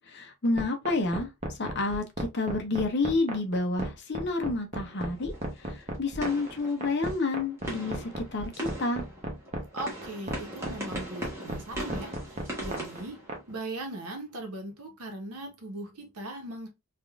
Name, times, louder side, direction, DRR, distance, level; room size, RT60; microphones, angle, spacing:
voice 1, 0.1-1.3 1.6-5.3 5.6-9.1, left 3 dB, 50° left, 0.7 m, -29 dB
sound 1, 0.6-13.4, right 1 dB, 30° right, 0.7 m, -34 dB
sound 2, 4.8-13.9, right 1 dB, 10° right, 1.0 m, -41 dB
voice 2, 9.7-13.2 13.5-16.7, right 1 dB, 85° right, 1.0 m, -39 dB
3.4 x 2.4 x 2.3 m
head